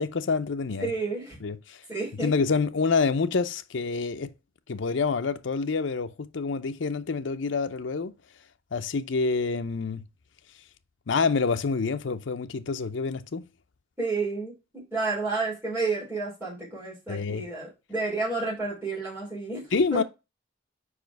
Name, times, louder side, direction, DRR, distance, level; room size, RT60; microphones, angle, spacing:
voice 1, 0.0-0.9 1.4-1.8 2.1-4.3 4.7-8.1 8.7-10.0 11.1-13.4 17.1-17.5 19.7-20.0, left 4 dB, 75° left, 0.6 m, -27 dB
voice 2, 0.8-1.4 1.9-2.3 14.0-14.5 14.9-19.6 19.9-20.0, right 3 dB, 10° right, 3.5 m, -30 dB
4.9 x 4.9 x 4.6 m
head